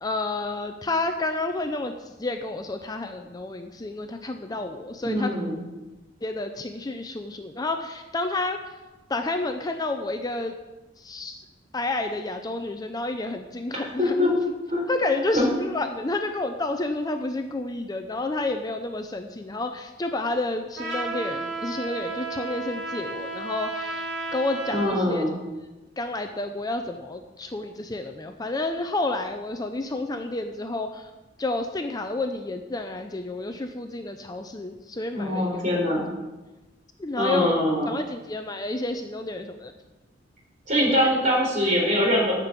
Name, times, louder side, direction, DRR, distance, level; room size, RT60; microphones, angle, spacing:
voice 1, 0.0-5.3 6.2-8.6 9.1-10.5 11.0-11.4 11.7-14.3 14.9-25.2 26.0-31.1 31.4-35.5 37.0-37.5 37.9-39.7, left 2 dB, 20° left, 6 dB, 0.5 m, -30 dB
voice 2, 5.0-5.6 13.7-14.3 14.7-14.8 15.3-15.5 24.7-25.3 35.1-36.1 37.2-37.9 40.7-42.3, left 1 dB, 40° right, -2 dB, 4.0 m, -23 dB
Trumpet, 20.8-25.0, right 3 dB, 70° right, 2.8 m, -33 dB
10.5 x 6.0 x 8.2 m, 1.1 s
head